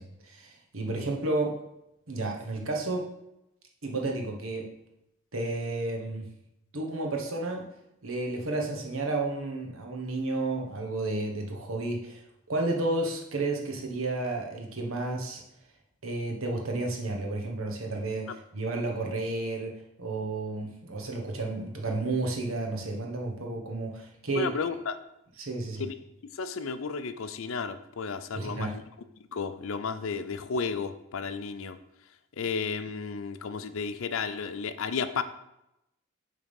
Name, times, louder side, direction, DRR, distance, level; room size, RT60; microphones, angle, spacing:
voice 1, 0.0-1.5 2.1-3.1 3.8-4.7 5.3-6.3 6.7-7.6 8.0-12.2 12.5-15.4 16.0-19.7 20.0-24.5 25.4-25.9 28.3-28.8, right 2 dB, 75° right, 1 dB, 1.2 m, -32 dB
voice 2, 24.3-25.0 25.8-25.9 26.4-28.7 29.3-31.8 32.4-35.2, left 5 dB, 70° left, 11 dB, 0.5 m, -33 dB
7.0 x 3.7 x 5.2 m, 0.85 s
head